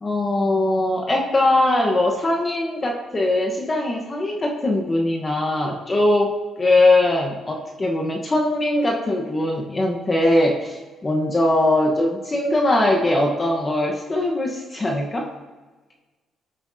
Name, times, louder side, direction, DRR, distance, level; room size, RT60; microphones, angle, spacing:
voice 1, 0.0-6.3 6.6-15.3, left 1 dB, 30° left, 0 dB, 1.1 m, -21 dB
14.0 x 6.1 x 2.7 m, 1.3 s
cardioid pair, 90°, 0 cm